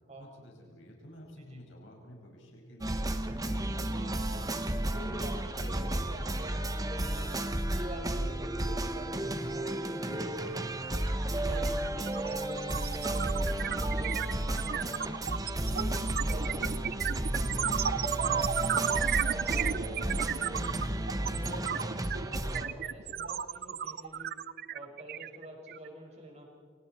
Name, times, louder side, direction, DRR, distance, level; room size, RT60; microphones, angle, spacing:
voice 1, 0.2-3.1 3.4-4.5 11.9-12.4, equal, 65° left, 0 dB, 5.7 m, -51 dB
sound 1, 2.8-22.7, right 1 dB, 20° right, 1.3 m, -33 dB
voice 2, 4.8-7.3 7.7-12.6 13.0-15.2 15.6-16.0 16.3-18.2 18.6-18.9 19.2-20.8 21.3-24.4 24.7-26.5, right 1 dB, 35° right, 0 dB, 5.8 m, -46 dB
sound 2, 11.1-11.2 11.5-25.9, right 9 dB, 50° right, 0.6 m, -33 dB
29.0 x 26.0 x 4.5 m, 2.2 s
head